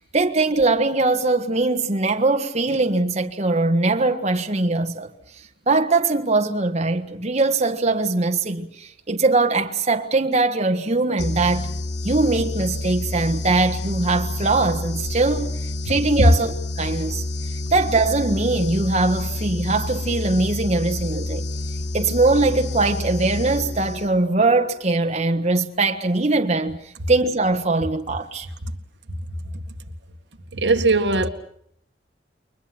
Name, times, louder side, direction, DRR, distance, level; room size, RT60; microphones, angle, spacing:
voice 1, 0.0-5.1 5.7-11.8 12.0-15.5 15.8-17.2 17.7-21.5 21.9-28.5, right 3 dB, 40° right, 1.5 m, -21 dB
sound 1, 11.2-24.3, left 2 dB, 80° left, 1.8 m, -28 dB
voice 2, 30.5-31.3, right 1 dB, 85° right, 1.9 m, -17 dB
29.5 x 23.0 x 6.0 m
head